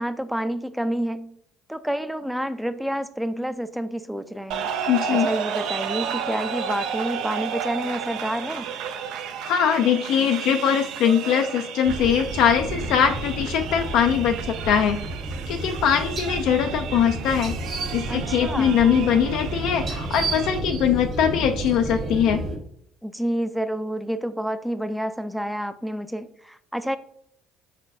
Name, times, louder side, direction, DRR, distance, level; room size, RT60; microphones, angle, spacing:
voice 1, 0.0-1.4 1.7-4.7 5.2-8.7 18.1-18.8 23.0-27.0, equal, 5° right, 12 dB, 0.4 m, -29 dB
sound 1, 4.5-20.6, right 7 dB, 70° right, 0.5 m, -32 dB
voice 2, 4.9-5.3 9.4-15.0 15.5-17.6 17.9-22.4, left 8 dB, 65° left, 6 dB, 0.3 m, -21 dB
sound 2, 11.8-22.6, right 2 dB, 45° right, 1.5 m, -31 dB
4.4 x 4.1 x 2.6 m, 0.70 s
hypercardioid pair, 60°, 0 cm